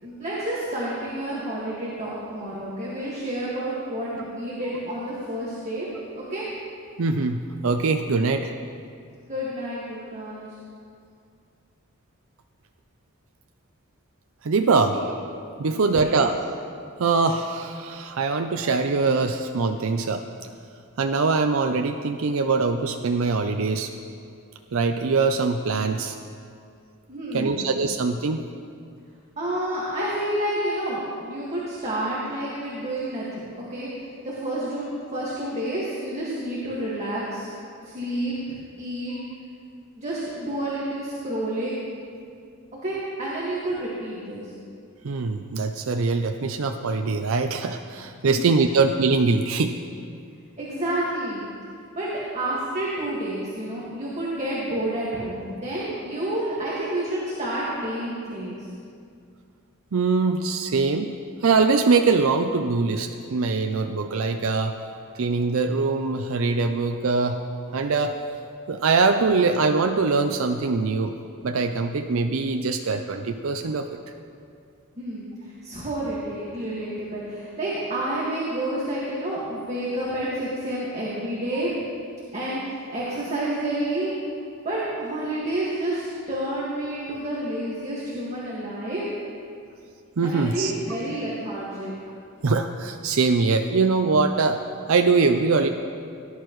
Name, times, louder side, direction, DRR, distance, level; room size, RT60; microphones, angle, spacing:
voice 1, 0.0-5.9 6.1-6.4 9.3-10.4 14.9-15.0 15.6-16.2 27.1-27.9 29.4-33.9 34.2-37.5 37.8-38.3 38.8-39.2 40.0-41.8 42.7-44.5 48.2-48.4 50.6-51.4 52.0-58.7 75.0-81.7 82.3-84.1 84.6-89.1 90.2-91.9, right 1 dB, 30° right, -7 dB, 1.9 m, -29 dB
voice 2, 7.0-8.5 14.4-14.9 15.6-16.3 17.0-20.2 21.0-23.9 24.7-26.1 27.3-28.4 45.0-49.8 59.9-61.2 61.4-64.8 65.1-67.4 67.7-68.1 68.7-71.1 71.4-73.8 90.2-90.7 92.4-94.6 94.9-95.7, right 4 dB, 70° right, 5 dB, 0.5 m, -22 dB
18.0 x 11.0 x 3.1 m, 2.3 s
head